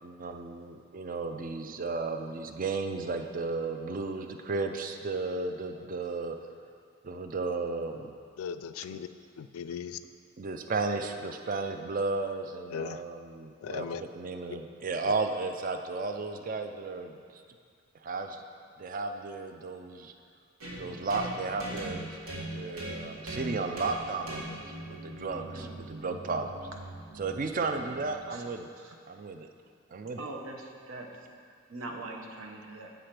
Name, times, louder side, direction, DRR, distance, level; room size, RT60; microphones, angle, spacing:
voice 1, 0.0-6.4 7.0-8.1 10.4-17.2 18.0-18.4 18.8-20.1 20.7-22.2 22.4-26.5 27.2-28.7 29.1-29.5 29.9-30.3, right 3 dB, 40° right, 6 dB, 0.4 m, -34 dB
voice 2, 8.4-9.1 9.4-10.0 12.7-13.0 13.6-14.0 15.0-15.1, left 7 dB, 75° left, 11 dB, 0.3 m, -37 dB
sound 1, 20.6-28.4, right 1 dB, 85° right, 1.8 m, -41 dB
voice 3, 25.5-25.8 28.3-28.4 28.8-29.0 30.2-31.1 31.7-32.9, right 2 dB, 70° right, 2 dB, 0.9 m, -42 dB
7.9 x 5.0 x 5.8 m, 2.2 s
head